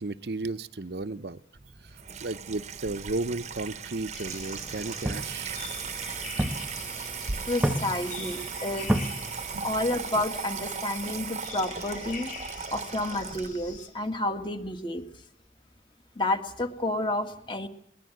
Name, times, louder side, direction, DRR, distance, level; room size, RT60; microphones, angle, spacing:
voice 1, 0.0-1.4 2.2-5.6 8.2-8.3 9.5-9.7, right 2 dB, 65° right, 14 dB, 0.8 m, -34 dB
Water tap faucet / Sink (filling or washing), 1.6-13.8, right 6 dB, 40° right, 0.9 m, -37 dB
sound 1, 4.1-13.9, left 6 dB, 45° left, 7.1 m, -45 dB
sound 2, 4.3-10.0, right 1 dB, 5° right, 1.3 m, -33 dB
voice 2, 7.5-8.9 9.6-12.3 12.7-15.0 16.2-17.7, left 1 dB, 30° left, 6 dB, 2.0 m, -30 dB
21.5 x 19.5 x 7.8 m, 0.66 s
head